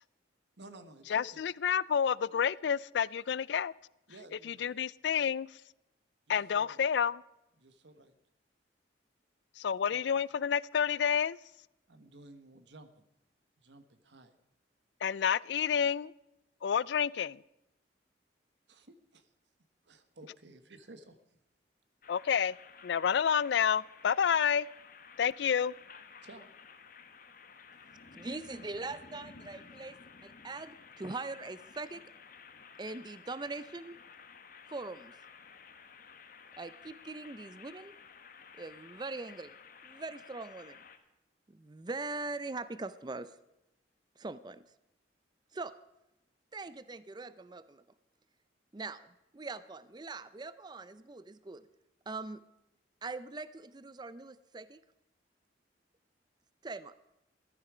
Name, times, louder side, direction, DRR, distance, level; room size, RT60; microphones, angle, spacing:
voice 1, 0.6-1.4 4.1-4.7 6.3-6.8 7.6-8.1 9.9-10.0 11.9-13.0 13.6-14.3 18.7-19.3 19.8-21.2 26.2-26.5, right 2 dB, 75° right, 1.4 m, -54 dB
voice 2, 1.1-3.7 4.4-5.5 6.3-7.2 9.6-11.4 15.0-16.1 16.6-17.4 22.1-22.5 22.8-24.7 25.2-25.7, left 7 dB, 70° left, 0.4 m, -29 dB
sound 1, 22.0-41.0, left 6 dB, 50° left, 1.3 m, -54 dB
voice 3, 28.1-30.0 30.2-32.0 32.8-34.0 34.7-35.1 36.6-37.9 38.6-39.6 39.8-40.8 41.5-43.4 44.2-44.6 45.5-45.7 46.5-47.8 48.7-51.6 52.1-52.4 53.0-54.8 56.6-56.9, right 3 dB, 25° right, 0.5 m, -42 dB
14.5 x 13.0 x 5.0 m
head